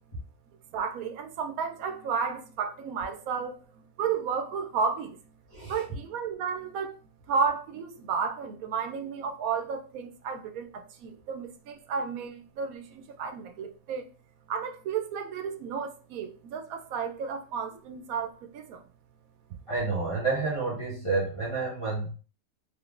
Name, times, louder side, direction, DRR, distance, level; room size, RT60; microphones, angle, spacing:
voice 1, 0.7-5.3 5.7-6.9 7.3-14.1 14.5-18.8, right 6 dB, 85° right, 1.0 m, -32 dB
voice 2, 5.5-5.8 19.7-22.1, right 3 dB, 25° left, 1.2 m, -29 dB
3.6 x 3.0 x 2.4 m
omnidirectional pair, 1.5 m